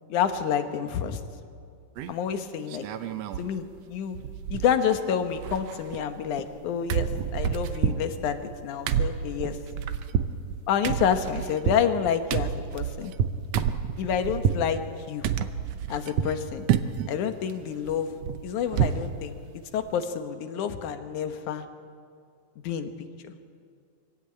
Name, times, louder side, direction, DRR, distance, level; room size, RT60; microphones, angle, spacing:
voice 1, 0.1-1.2 2.1-2.9 3.4-4.2 4.5-9.6 10.7-13.1 14.0-15.3 15.9-16.7 17.1-18.1 18.4-21.7 22.6-22.9 23.2-23.3, left 8 dB, 70° left, 8 dB, 2.5 m, -28 dB
sound 1, 2.0-2.3 2.7-3.5 3.8-3.9 4.1-5.0 5.3-6.6 6.9-14.7 15.2-16.4 16.7-17.1 17.5-19.1 19.4-19.5 19.9-20.0, right 8 dB, 75° right, 1.5 m, -29 dB
24.5 x 16.0 x 9.0 m, 2.3 s
omnidirectional pair, 3.8 m